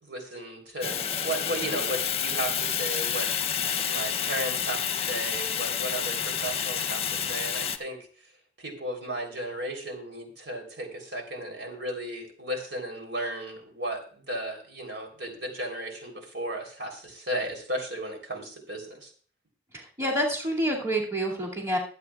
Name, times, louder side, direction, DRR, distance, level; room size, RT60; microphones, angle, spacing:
voice 1, 0.0-8.0 8.6-19.1, right 1 dB, 80° right, 3 dB, 3.6 m, -35 dB
Fire, 0.8-7.8, left 8 dB, 35° left, 0.7 m, -29 dB
voice 2, 19.7-21.8, right 1 dB, 15° right, -3 dB, 2.4 m, -28 dB
22.5 x 8.5 x 2.4 m, 0.43 s
head